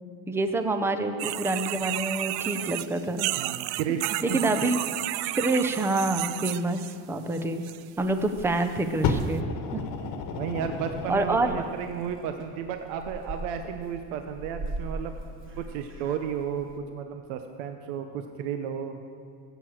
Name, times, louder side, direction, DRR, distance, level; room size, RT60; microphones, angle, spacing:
voice 1, 0.3-3.3 4.2-4.8 5.3-6.8 7.1-7.7 8.0-9.5 9.7-9.8 11.1-11.5, right 2 dB, 5° right, 8 dB, 0.4 m, -27 dB
sound 1, 1.2-7.0 7.3-7.8 8.6-8.7 9.2-9.3, right 17 dB, 60° right, 0.5 m, -32 dB
voice 2, 3.4-4.5 10.3-15.2 15.6-19.0, right 8 dB, 85° right, 6 dB, 1.0 m, -33 dB
Purr / Meow, 8.0-16.8, right 2 dB, 30° right, 1.2 m, -42 dB
Fire, 9.0-11.9 12.7-12.8, left 4 dB, 50° left, 1.2 m, -31 dB
16.5 x 8.1 x 7.7 m, 2.3 s
cardioid pair, 165°, 43 cm